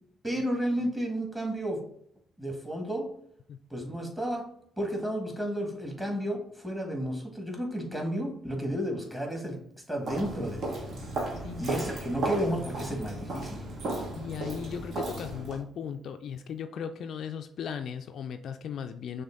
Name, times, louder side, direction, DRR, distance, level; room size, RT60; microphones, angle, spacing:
voice 1, 0.2-1.8 2.4-3.1 3.7-4.4 4.8-9.6 9.9-10.6 11.6-13.6, equal, 10° right, 1 dB, 1.7 m, -32 dB
Walk footsteps, 10.0-15.6, right 2 dB, 55° right, 0.9 m, -35 dB
voice 2, 14.2-19.2, left 7 dB, 60° left, 7 dB, 0.3 m, -37 dB
6.2 x 2.2 x 3.6 m, 0.68 s
hypercardioid pair, 45°, 0 cm